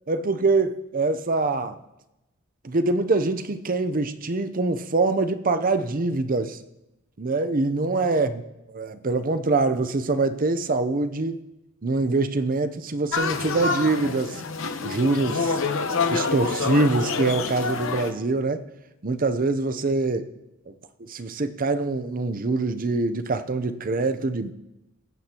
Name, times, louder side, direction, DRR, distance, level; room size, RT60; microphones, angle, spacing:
voice 1, 0.1-1.8 2.6-6.6 7.2-8.4 8.7-11.4 11.8-14.4 14.8-15.6 16.1-18.6 19.0-20.3 20.7-20.8 21.0-24.5, right 3 dB, 40° right, 11 dB, 0.6 m, -24 dB
sound 1, 13.1-18.1, left 4 dB, 65° left, 0.9 m, -27 dB
23.0 x 7.9 x 2.9 m, 0.94 s
head